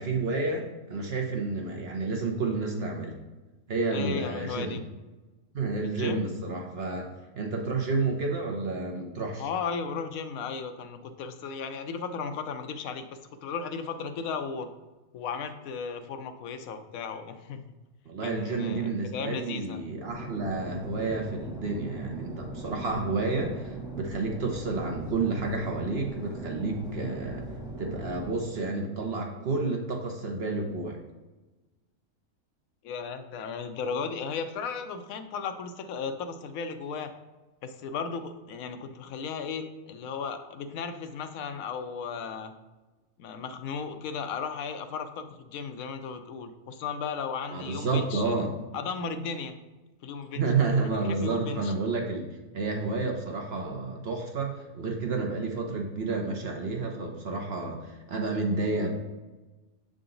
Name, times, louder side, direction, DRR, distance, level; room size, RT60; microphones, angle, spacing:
voice 1, 0.0-3.2 3.7-4.8 5.5-7.1 7.3-9.5 18.1-27.5 27.8-31.0 47.5-48.5 50.3-52.3 52.5-58.9, right 3 dB, 50° right, 1 dB, 0.8 m, -30 dB
voice 2, 3.9-4.8 5.8-6.2 9.4-14.7 15.1-17.6 18.2-19.8 32.8-37.1 37.6-42.5 43.2-48.4 48.7-49.6 50.0-50.4 51.0-51.7, left 5 dB, 70° left, 8 dB, 1.0 m, -35 dB
sound 1, 20.1-28.3, right 2 dB, 5° right, 0.9 m, -40 dB
6.7 x 3.8 x 3.8 m, 1.2 s
omnidirectional pair, 1.6 m